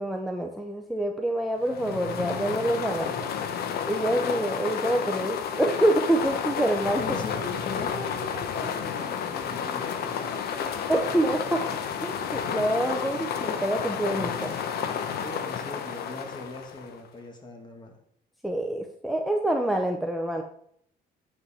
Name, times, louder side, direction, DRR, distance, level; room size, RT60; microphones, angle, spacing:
voice 1, 0.0-3.1 3.9-7.0 10.9-11.6 12.0-14.5 18.4-20.4, right 1 dB, ahead, 3 dB, 0.7 m, -26 dB
sound 1, 1.6-17.1, left 7 dB, 65° left, 0.8 m, -31 dB
voice 2, 7.0-11.8 15.2-18.0, left 2 dB, 25° left, 3 dB, 1.8 m, -40 dB
7.9 x 5.7 x 4.2 m, 0.67 s
cardioid pair, 110°, 17 cm